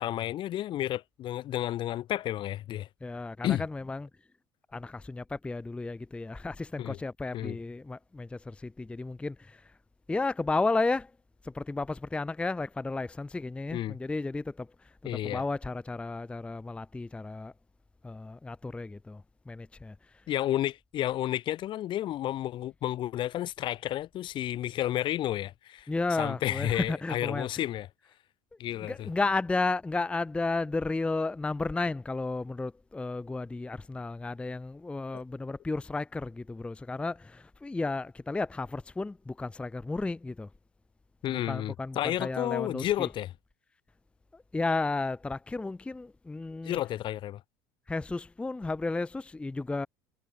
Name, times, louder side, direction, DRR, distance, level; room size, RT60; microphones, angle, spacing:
voice 1, 0.0-2.9 3.4-3.6 6.8-7.0 7.3-7.6 13.7-14.0 15.0-15.4 20.3-25.9 26.2-27.9 28.6-29.1 35.1-35.2 41.2-43.3 46.6-47.4, left 13 dB, 50° left, 0.8 m, -31 dB
voice 2, 3.0-4.1 4.7-9.7 10.1-11.1 11.4-14.7 15.0-17.5 18.0-20.0 25.9-27.5 28.8-40.5 41.3-43.1 44.3-46.8 47.9-49.9, left 3 dB, 10° left, 0.5 m, -33 dB
hypercardioid pair, 80°, 11 cm